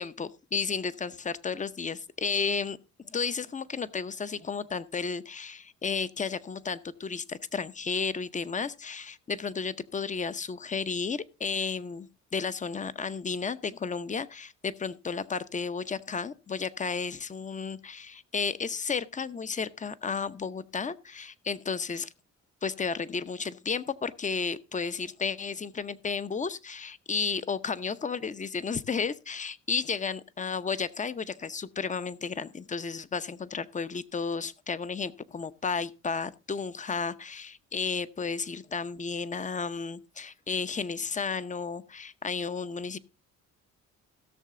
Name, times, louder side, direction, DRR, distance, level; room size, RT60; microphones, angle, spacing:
voice 1, 0.0-2.8 3.0-22.1 22.6-43.0, left 5 dB, 25° left, 0.7 m, -33 dB
16.5 x 6.6 x 3.7 m
cardioid pair, 90°, 30 cm